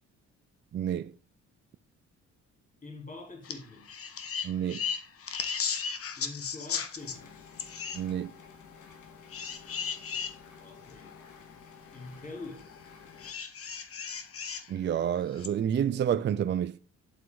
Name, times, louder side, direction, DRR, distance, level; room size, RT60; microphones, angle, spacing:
voice 1, 0.7-1.1 4.4-4.8 7.9-8.3 14.7-16.8, right 9 dB, 40° right, 0.4 m, -29 dB
voice 2, 2.8-3.9 6.2-7.3 10.6-11.1 11.9-12.7, left 3 dB, 25° left, 3.6 m, -44 dB
sound 1, 3.4-3.6 3.9-7.2 7.6-8.0 9.3-10.3 11.1-11.2 13.2-14.7 15.4-15.5, left 6 dB, 50° left, 1.2 m, -35 dB
sound 2, 7.0-13.3, left 6 dB, 80° left, 2.0 m, -52 dB
8.3 x 7.7 x 3.9 m
cardioid pair, 90°, 30 cm